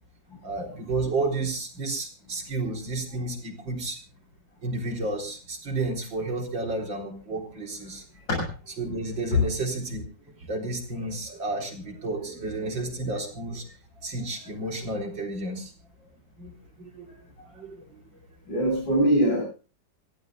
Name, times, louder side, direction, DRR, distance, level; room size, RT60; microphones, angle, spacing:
voice 1, 0.4-4.0 4.6-8.0 8.8-10.0 10.5-13.7 14.0-15.7 16.4-17.1 17.5-18.3, right 2 dB, 75° right, 0 dB, 4.7 m, -31 dB
voice 2, 18.5-19.4, equal, 80° left, -1 dB, 7.4 m, -23 dB
25.5 x 16.0 x 2.4 m, 0.35 s
omnidirectional pair, 2.1 m